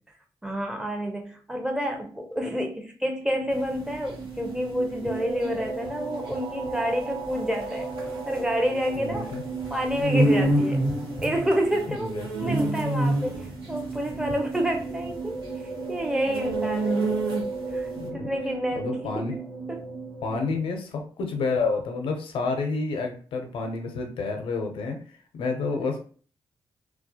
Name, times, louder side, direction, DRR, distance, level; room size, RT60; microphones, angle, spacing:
voice 1, 0.4-7.9 8.2-9.3 9.7-10.8 11.2-15.4 15.9-17.0 17.7-19.4 19.7-19.9 25.7-25.8, equal, 10° right, 3 dB, 0.6 m, -29 dB
sound 1, 3.3-20.6, right 3 dB, 60° right, 0.9 m, -35 dB
sound 2, 3.6-17.8, right 1 dB, 85° right, 1.1 m, -28 dB
voice 2, 9.0-9.4 11.9-12.5 18.0-18.3 18.7-19.4 20.2-25.0 25.3-26.0, left 4 dB, 85° left, 3 dB, 0.5 m, -29 dB
2.3 x 2.1 x 2.7 m, 0.42 s
cardioid pair, 75°, 9 cm